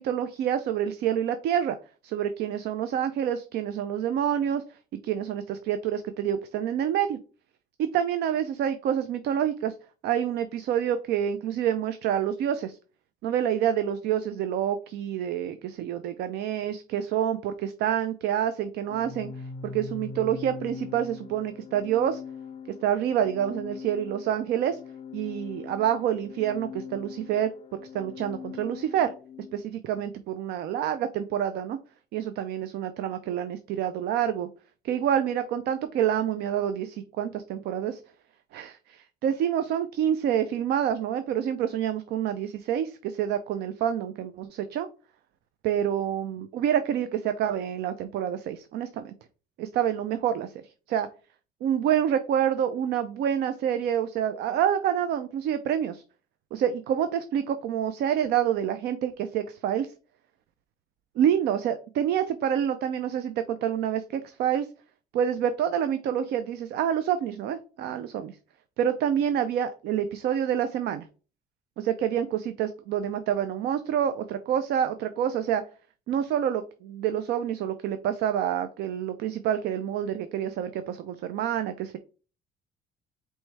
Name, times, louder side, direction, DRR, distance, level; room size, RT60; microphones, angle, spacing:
voice 1, 0.0-1.8 2.0-4.6 5.0-7.2 7.8-9.7 10.0-12.8 13.2-19.3 19.6-22.2 22.8-24.8 25.1-29.1 29.5-31.8 32.1-34.5 34.8-38.0 38.5-44.9 45.6-49.1 49.6-50.6 50.9-51.1 51.6-56.0 56.5-59.9 61.2-64.7 65.1-68.4 68.8-71.1 71.8-75.6 76.1-82.0, right 9 dB, 75° right, 10 dB, 0.5 m, -27 dB
Organ, 18.8-29.6, left 5 dB, 35° left, 0.4 m, -42 dB
4.6 x 3.1 x 3.2 m, 0.35 s
cardioid pair, 110°, 17 cm